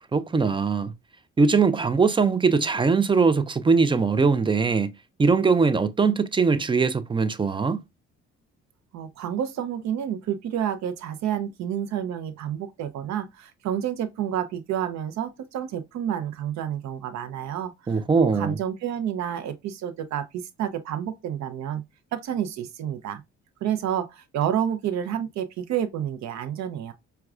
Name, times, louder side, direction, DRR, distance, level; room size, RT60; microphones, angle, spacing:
voice 1, 0.1-0.9 1.4-4.9 5.2-7.8 17.9-18.6, right 4 dB, 15° right, 0.4 m, -21 dB
voice 2, 8.9-21.8 22.1-23.2 23.6-26.9, right 10 dB, 65° right, 0.6 m, -29 dB
4.6 x 2.2 x 2.4 m
supercardioid pair, 65°, 30 cm